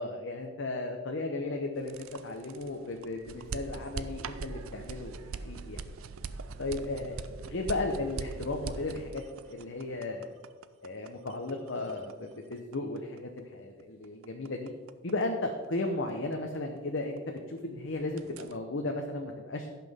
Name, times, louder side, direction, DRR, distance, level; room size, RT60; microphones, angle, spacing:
voice 1, 0.0-5.8 6.6-10.3 10.8-14.7 15.0-19.7, left 2 dB, 60° left, 2 dB, 0.8 m, -35 dB
sound 1, 1.8-17.6 17.9-18.6, right 4 dB, 75° right, 0.5 m, -42 dB
16.0 x 5.9 x 3.6 m, 1.4 s
head